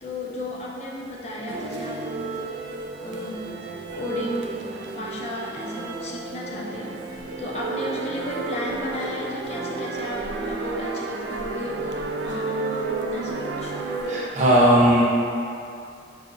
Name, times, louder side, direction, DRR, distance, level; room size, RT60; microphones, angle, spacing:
voice 1, 0.0-2.0 3.0-3.5 3.9-6.9 7.4-12.9 13.1-13.7, left 1 dB, 40° left, -4 dB, 0.5 m, -33 dB
sound 1, 1.5-14.3, right 3 dB, 70° right, 0.3 m, -32 dB
voice 2, 14.1-15.0, right 1 dB, 45° right, -5 dB, 0.7 m, -17 dB
4.9 x 2.8 x 2.5 m, 2.5 s
head